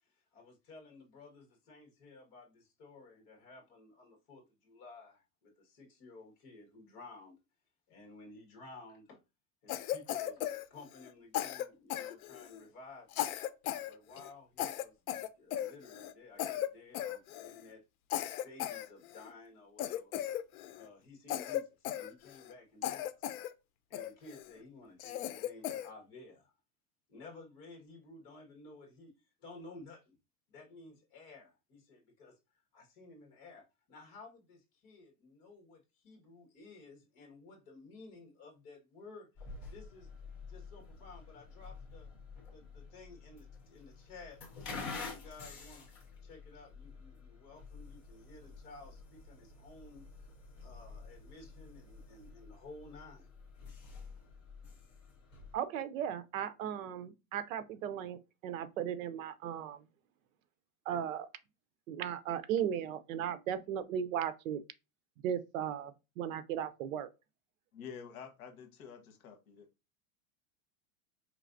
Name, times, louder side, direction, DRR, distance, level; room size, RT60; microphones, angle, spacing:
voice 1, 0.0-7.4 7.9-9.2 9.6-10.4 10.7-13.4 13.8-17.8 18.2-20.1 20.8-23.3 23.9-26.5 27.1-29.1 29.4-30.2 30.5-40.1 40.5-42.1 42.5-45.9 46.2-50.3 50.6-53.3, left 3 dB, 40° left, 1.7 m, -54 dB
Cough, 9.7-11.1 11.3-12.6 13.1-13.9 14.2-14.3 14.6-16.1 16.4-16.7 16.9-17.6 18.1-19.3 19.8-20.9 21.3-22.5 22.8-23.5 23.9-24.5 25.0-25.9, left 12 dB, 90° left, 0.6 m, -37 dB
sound 1, 39.4-55.6, left 4 dB, 20° left, 0.4 m, -49 dB
voice 2, 55.5-59.8 60.9-61.3 61.9-64.6 65.2-67.1, right 9 dB, 65° right, 0.7 m, -36 dB
voice 3, 67.7-69.7, left 7 dB, 70° left, 1.2 m, -49 dB
4.6 x 3.2 x 2.5 m
supercardioid pair, 180°, 43 cm